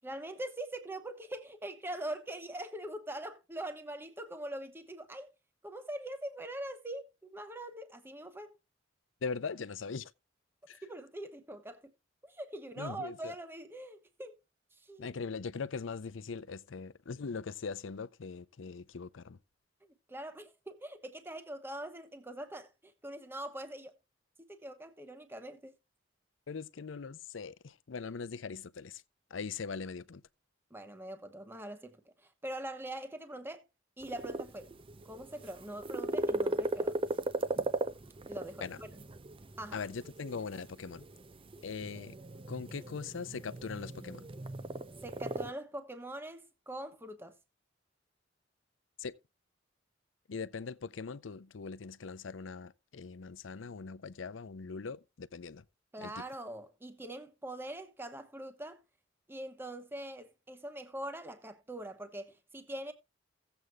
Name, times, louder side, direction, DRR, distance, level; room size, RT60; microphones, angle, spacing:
voice 1, 0.0-5.3 5.6-8.5 10.8-11.8 12.2-14.3 14.9-15.1 20.1-23.9 24.4-25.7 30.7-32.0 32.4-33.6 34.0-34.7 35.0-37.0 38.3-38.7 39.6-39.8 45.0-47.3 55.9-58.8 59.3-62.9, right 1 dB, 10° right, 1.0 m, -43 dB
voice 2, 9.2-10.1 10.7-10.9 12.8-13.3 15.0-19.4 26.5-29.0 29.3-30.2 38.6-38.8 39.7-41.1 41.6-42.2 42.5-44.3 49.0-49.2 50.3-55.6 56.0-56.2, left 5 dB, 80° left, 0.6 m, -41 dB
sound 1, 34.0-45.5, right 2 dB, 30° right, 0.6 m, -38 dB
16.5 x 7.9 x 2.3 m
head